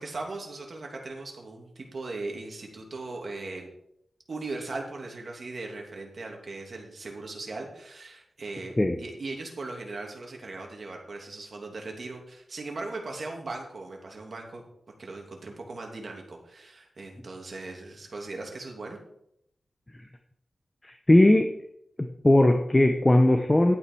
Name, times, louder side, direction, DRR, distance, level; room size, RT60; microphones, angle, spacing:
voice 1, 0.0-3.7 4.3-14.6 15.0-19.0, right 3 dB, 55° right, 1 dB, 2.8 m, -38 dB
voice 2, 20.8-21.5 22.0-23.8, left 1 dB, 20° left, 5 dB, 0.9 m, -19 dB
12.0 x 8.7 x 4.7 m, 0.75 s
wide cardioid pair, 125°, 0 cm